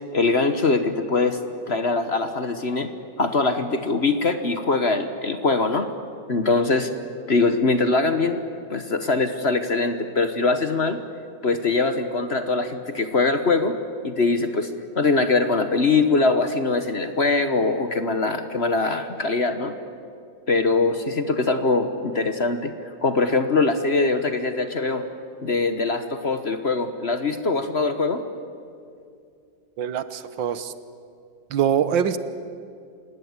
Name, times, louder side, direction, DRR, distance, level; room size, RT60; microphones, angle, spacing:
voice 1, 0.1-1.4 1.7-2.9 3.2-5.9 6.3-6.9 7.3-8.4 8.7-11.0 11.4-13.7 14.0-14.7 14.9-19.7 20.5-22.7 23.0-25.0 25.4-28.2, left 3 dB, 40° left, 8 dB, 1.2 m, -22 dB
voice 2, 29.8-30.7 31.5-32.2, right 9 dB, 80° right, 13 dB, 1.8 m, -23 dB
29.0 x 17.5 x 9.6 m, 2.4 s
omnidirectional pair, 2.0 m